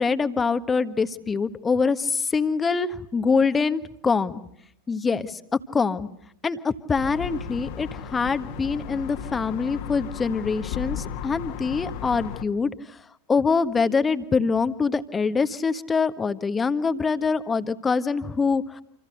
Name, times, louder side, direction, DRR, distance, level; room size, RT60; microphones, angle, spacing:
voice 1, 0.0-4.4 4.9-5.4 5.7-6.1 6.4-13.0 13.3-18.8, left 5 dB, 15° left, 11 dB, 1.5 m, -24 dB
sound 1, 6.9-12.4, left 8 dB, 45° left, 2.0 m, -35 dB
29.0 x 27.5 x 6.5 m, 0.67 s
figure-of-eight pair, 90°, 0 cm